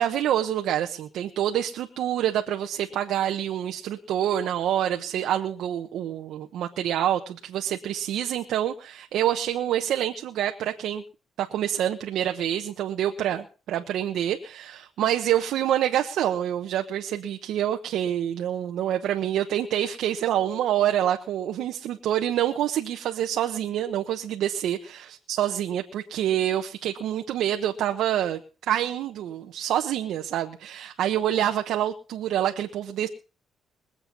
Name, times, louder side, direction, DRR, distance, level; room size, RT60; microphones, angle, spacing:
voice 1, 0.0-11.0 11.4-28.4 28.7-33.1, right 11 dB, 80° right, 4 dB, 1.1 m, -27 dB
22.0 x 7.9 x 5.4 m, 0.36 s
cardioid pair, 90°, 0 cm